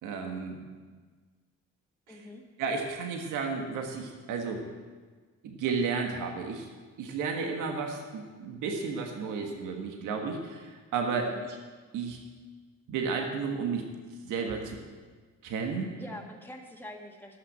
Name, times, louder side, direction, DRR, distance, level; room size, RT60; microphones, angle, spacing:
voice 1, 0.0-0.6 2.1-2.3 2.6-4.6 5.4-6.7 7.0-11.6 11.9-12.2 12.9-13.9 14.2-14.8 15.4-15.9, right 5 dB, 90° right, 3 dB, 1.6 m, -32 dB
voice 2, 2.1-2.4 11.1-11.4 16.0-17.4, left 1 dB, 5° left, 1 dB, 1.9 m, -45 dB
12.5 x 6.7 x 8.8 m, 1.5 s
cardioid pair, 90°, 30 cm